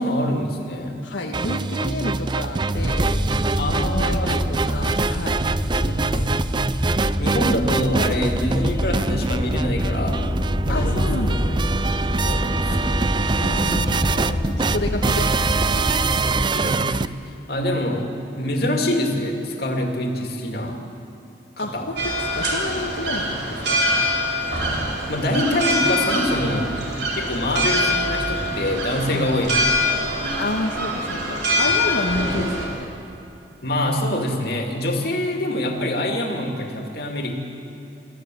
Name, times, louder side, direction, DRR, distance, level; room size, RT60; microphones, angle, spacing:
voice 1, 0.0-1.0 3.6-4.5 6.1-6.4 6.9-10.2 10.7-11.1 12.2-13.1 16.4-18.1 18.4-20.8 21.6-21.9 24.5-26.7 27.2-29.8 31.6-31.7 33.6-37.3, left 1 dB, 55° left, 2 dB, 2.5 m, -25 dB
voice 2, 1.0-3.2 3.9-5.4 5.7-6.2 10.7-11.6 13.4-15.9 21.6-23.8 29.1-29.3 30.4-32.9, left 2 dB, 85° left, 0 dB, 1.5 m, -30 dB
sound 1, 1.3-17.1, right 4 dB, 25° right, 0.4 m, -24 dB
sound 2, 2.7-16.5, left 1 dB, 20° left, 0.7 m, -26 dB
sound 3, 22.0-32.7, left 1 dB, 65° right, 3.9 m, -24 dB
24.0 x 14.5 x 7.8 m, 2.9 s
head